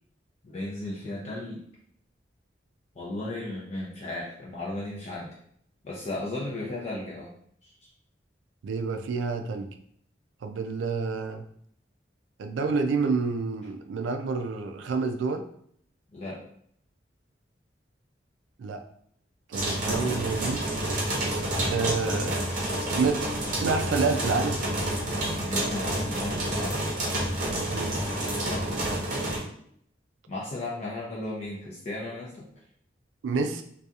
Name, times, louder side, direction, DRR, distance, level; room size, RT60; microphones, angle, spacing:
voice 1, 0.4-1.6 2.9-5.3 5.8-7.3 7.6-7.9 16.1-16.4 25.4-26.9 28.4-28.7 30.3-32.5, left 2 dB, 35° left, -5 dB, 0.4 m, -35 dB
voice 2, 8.6-9.7 10.4-11.5 12.4-15.4 18.6-18.8 19.5-20.6 21.7-22.4 22.9-23.2 23.6-24.6 27.7-28.0 33.2-33.6, right 4 dB, 90° right, 7 dB, 0.3 m, -28 dB
sound 1, 19.5-29.4, right 1 dB, 45° right, 0.7 m, -29 dB
2.7 x 2.3 x 2.4 m, 0.67 s
head